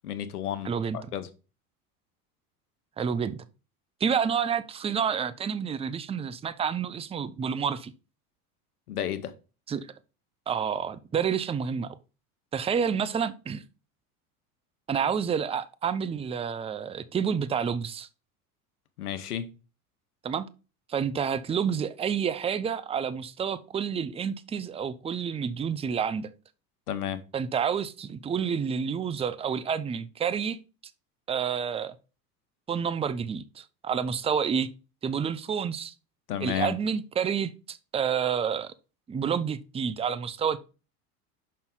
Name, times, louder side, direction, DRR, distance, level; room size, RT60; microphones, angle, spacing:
voice 1, 0.0-1.3 8.9-9.3 19.0-19.5 26.9-27.2 36.3-36.7, left 10 dB, 90° left, 1.0 m, -32 dB
voice 2, 0.6-1.0 3.0-3.4 4.0-7.9 9.7-9.9 10.5-11.9 12.5-13.6 14.9-18.1 20.2-20.5 20.9-26.3 27.3-30.6 31.3-31.9 32.7-34.7 35.0-35.9 36.4-38.7 39.1-40.6, right 7 dB, 15° right, 0.5 m, -29 dB
6.4 x 5.5 x 3.8 m
hypercardioid pair, 90°, 45 cm